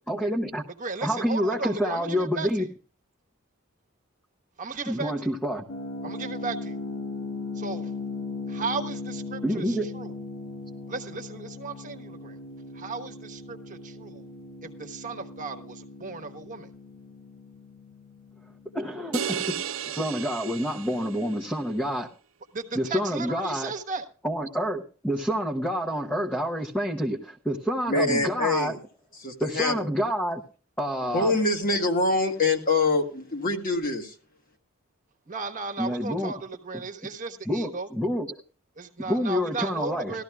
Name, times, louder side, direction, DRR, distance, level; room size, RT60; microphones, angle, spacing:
voice 1, 0.1-0.6 1.0-2.7 4.9-5.6 9.4-9.9 18.7-19.5 19.9-22.1 22.7-23.7 24.2-28.8 29.4-30.4 30.8-31.4 35.8-36.3 37.5-38.4 39.0-40.2, equal, 5° left, 0.8 m, -28 dB
voice 2, 0.8-2.7 4.6-5.3 6.0-6.8 7.5-7.9 8.5-10.1 10.9-12.4 12.7-14.3 14.6-16.7 22.5-24.0 35.3-37.9 38.8-40.2, right 4 dB, 40° right, 1.2 m, -35 dB
sound 1, 5.7-20.5, left 3 dB, 75° left, 1.4 m, -39 dB
sound 2, 19.1-21.5, right 8 dB, 80° right, 0.6 m, -34 dB
voice 3, 27.9-28.8 29.2-29.9 31.1-34.1, left 3 dB, 45° left, 1.6 m, -25 dB
19.0 x 13.5 x 2.3 m
head